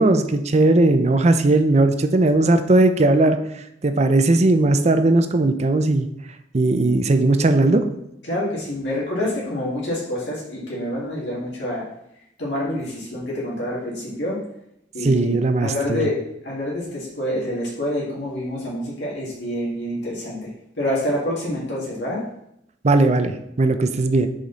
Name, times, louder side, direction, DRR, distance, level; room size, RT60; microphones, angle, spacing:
voice 1, 0.0-3.4 3.8-6.1 6.5-7.9 15.0-16.1 22.8-24.3, right 2 dB, 35° right, 8 dB, 0.5 m, -18 dB
voice 2, 8.3-11.9 12.4-14.4 14.9-15.3 15.6-20.5 20.8-22.2, left 1 dB, 65° left, -6 dB, 2.4 m, -27 dB
6.3 x 5.1 x 4.1 m, 0.79 s
head